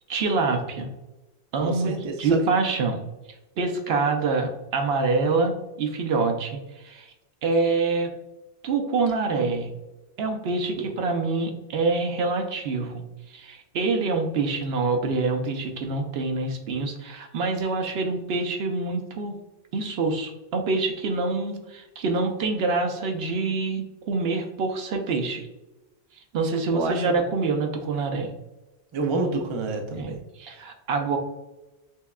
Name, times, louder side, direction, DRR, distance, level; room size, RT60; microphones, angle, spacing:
voice 1, 0.1-0.9 1.5-3.0 3.6-7.1 7.4-8.1 8.6-9.7 10.2-13.0 13.3-19.3 19.7-25.5 26.3-28.3 30.0-30.1 30.4-31.2, right 3 dB, 75° right, 5 dB, 0.8 m, -26 dB
voice 2, 1.6-2.4 9.3-9.5 10.8-10.9 26.7-27.2 28.9-30.2, right 3 dB, 50° right, 3 dB, 0.3 m, -28 dB
5.6 x 2.2 x 2.3 m, 1.0 s
omnidirectional pair, 1.1 m